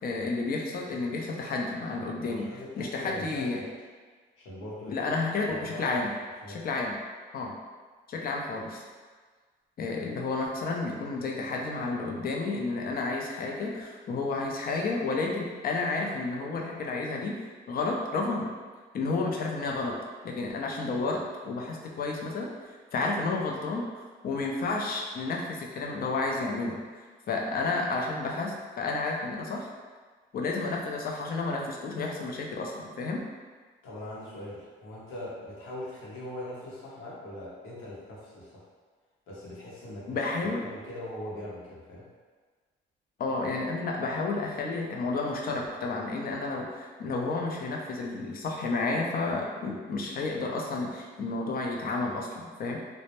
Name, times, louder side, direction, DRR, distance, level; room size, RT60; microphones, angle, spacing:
voice 1, 0.0-3.6 4.9-6.1 6.5-7.0 7.3-7.5 8.1-8.8 9.8-17.4 17.7-18.5 18.9-20.0 20.2-23.9 24.2-26.8 27.3-29.7 30.3-33.2 40.1-40.6 43.2-52.8, left 3 dB, 50° left, 0 dB, 0.5 m, -31 dB
voice 2, 2.2-3.7 4.4-5.1 5.5-5.9 6.4-6.6 33.8-38.7 39.3-40.3 40.6-42.1, left 1 dB, 85° left, -6 dB, 0.8 m, -41 dB
2.1 x 2.1 x 2.9 m, 1.5 s
cardioid pair, 90°, 20 cm